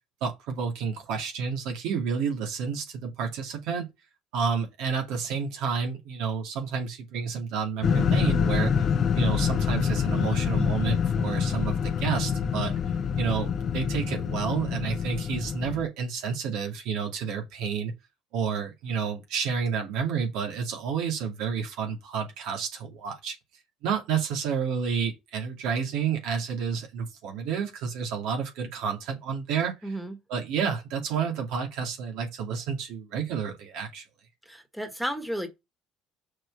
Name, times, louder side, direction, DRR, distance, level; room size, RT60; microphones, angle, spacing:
voice 1, 0.2-3.9 4.3-8.9 9.1-12.7 13.2-17.9 18.3-23.4 23.8-30.0 30.3-34.0, right 6 dB, 75° right, 2.4 m, -30 dB
sound 1, 7.8-15.8, left 7 dB, 45° left, 0.8 m, -26 dB
voice 2, 29.8-30.2 34.5-35.5, equal, ahead, 1.8 m, -33 dB
6.5 x 4.2 x 5.5 m
supercardioid pair, 105°, 0 cm